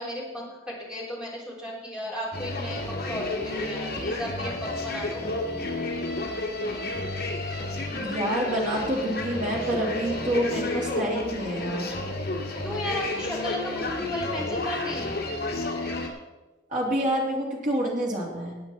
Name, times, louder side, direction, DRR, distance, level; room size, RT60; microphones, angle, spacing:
voice 1, 0.0-5.2 12.6-15.1, left 1 dB, 5° right, -5 dB, 3.7 m, -34 dB
sound 1, 2.3-16.1, left 2 dB, 50° left, 2.2 m, -31 dB
voice 2, 7.9-11.9 16.7-18.6, right 1 dB, 40° right, -2 dB, 3.2 m, -28 dB
17.5 x 8.7 x 4.4 m, 1.2 s
head